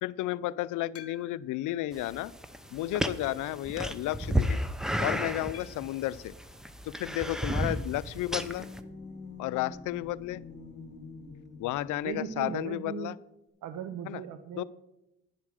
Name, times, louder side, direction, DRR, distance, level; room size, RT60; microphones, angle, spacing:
voice 1, 0.0-2.3 2.7-4.6 5.0-6.3 6.8-8.7 9.4-10.4 11.6-13.2 14.1-14.2 14.6-14.7, left 15 dB, 85° left, 19 dB, 0.5 m, -32 dB
sound 1, 0.9-1.6 2.2-2.3 3.2-3.6 5.5-6.0 7.7-8.0 8.2-8.3 8.6-8.7 10.7-10.8, left 8 dB, 55° left, 1.2 m, -52 dB
sound 2, 1.9-8.8, equal, ahead, 0.7 m, -33 dB
sound 3, 7.7-12.4, left 4 dB, 35° left, 2.3 m, -46 dB
voice 2, 12.0-13.1 13.6-14.6, right 7 dB, 80° right, 9 dB, 0.8 m, -37 dB
11.0 x 7.3 x 6.3 m, 0.93 s
cardioid pair, 90°, 30 cm